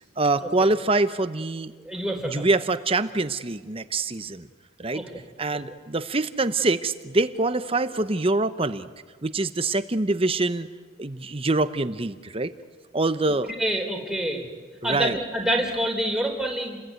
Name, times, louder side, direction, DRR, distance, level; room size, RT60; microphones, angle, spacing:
voice 1, 0.2-1.7 2.2-4.5 4.8-5.0 5.4-8.9 9.2-10.7 11.0-12.5 12.9-13.5 14.8-15.2, right 2 dB, 30° right, 11 dB, 0.9 m, -25 dB
voice 2, 1.8-2.5 4.9-5.1 13.6-14.5 14.8-16.8, right 1 dB, 5° right, 2 dB, 3.8 m, -27 dB
30.0 x 21.0 x 9.4 m, 1.5 s
head